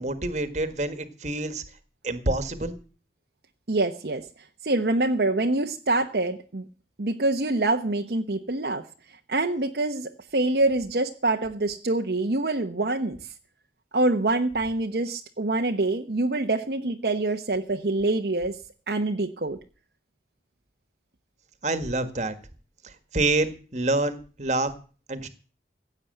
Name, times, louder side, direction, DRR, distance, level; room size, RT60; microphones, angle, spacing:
voice 1, 0.0-1.6 2.0-2.8 21.6-22.3 23.1-24.7 25.1-25.3, right 2 dB, 40° right, 10 dB, 1.6 m, -27 dB
voice 2, 3.7-4.3 4.6-6.6 7.0-8.9 9.3-13.2 13.9-18.6 18.9-19.6, right 2 dB, 60° right, 3 dB, 1.0 m, -25 dB
16.0 x 8.7 x 7.8 m, 0.38 s
head